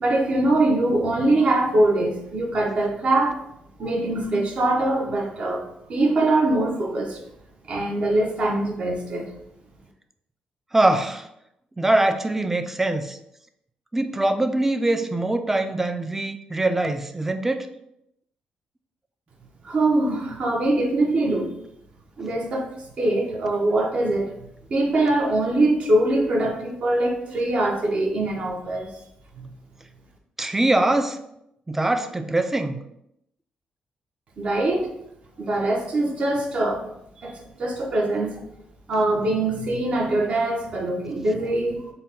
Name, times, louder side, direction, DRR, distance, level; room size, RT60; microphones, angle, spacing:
voice 1, 0.0-3.4 3.8-5.6 5.9-7.2 7.7-9.3 19.6-21.5 22.2-22.7 23.0-24.3 24.7-28.9 29.4-29.5 34.4-34.9 35.4-36.8 37.2-38.4 38.9-41.9, right 2 dB, 55° right, 1 dB, 0.8 m, -23 dB
voice 2, 10.7-11.3 11.8-13.2 13.9-17.7 30.4-31.2 31.7-32.8, right 2 dB, 10° right, 8 dB, 0.3 m, -23 dB
4.0 x 2.1 x 3.9 m, 0.79 s
cardioid pair, 100°, 3 cm